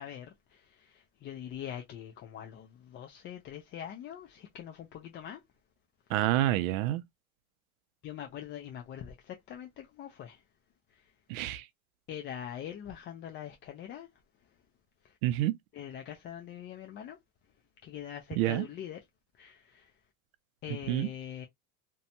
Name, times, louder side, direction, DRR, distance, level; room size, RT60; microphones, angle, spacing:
voice 1, 0.0-5.4 8.0-10.4 10.9-11.1 12.1-14.1 15.0-15.2 15.7-17.2 17.8-19.0 19.4-19.9 20.6-21.5, left 10 dB, 30° left, 0.4 m, -43 dB
voice 2, 6.1-7.0 11.3-11.6 15.2-15.6 18.4-18.6 20.9-21.1, right 14 dB, 75° right, 0.5 m, -28 dB
2.6 x 2.2 x 2.6 m
supercardioid pair, 115°, 41 cm